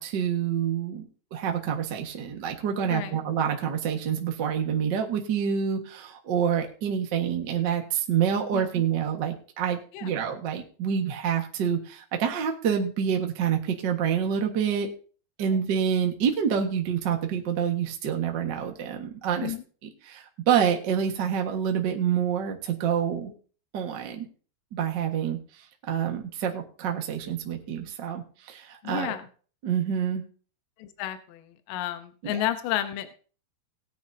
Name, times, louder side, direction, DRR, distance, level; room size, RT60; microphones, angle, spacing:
voice 1, 0.0-14.9 15.4-19.5 20.1-23.3 23.7-24.3 24.7-25.4 25.9-29.2 29.6-30.2 32.2-32.4, right 8 dB, 50° right, 2 dB, 1.3 m, -27 dB
voice 2, 2.8-3.2 8.5-8.7 9.9-10.1 19.4-19.6 28.8-29.3 30.8-33.1, left 12 dB, 75° left, 9 dB, 2.4 m, -31 dB
18.5 x 9.3 x 2.7 m, 0.40 s
omnidirectional pair, 4.3 m